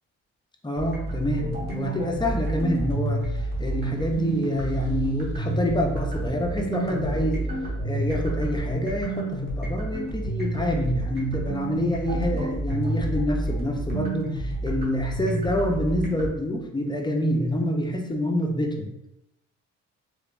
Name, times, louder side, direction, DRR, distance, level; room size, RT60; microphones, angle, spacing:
voice 1, 0.6-7.5 7.8-18.9, equal, 15° left, 1 dB, 0.5 m, -27 dB
sound 1, 0.7-16.3, right 1 dB, 35° right, 1.4 m, -29 dB
3.2 x 3.2 x 2.4 m, 0.85 s
cardioid pair, 90°, 30 cm